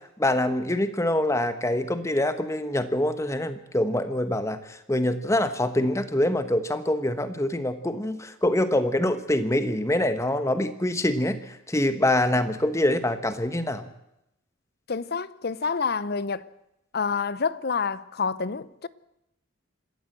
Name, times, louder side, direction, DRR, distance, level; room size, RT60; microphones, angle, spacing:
voice 1, 0.2-13.8, left 1 dB, 15° left, 1.2 m, -25 dB
voice 2, 14.9-16.5 16.9-18.9, left 5 dB, 50° left, 0.7 m, -28 dB
26.0 x 13.0 x 7.9 m
head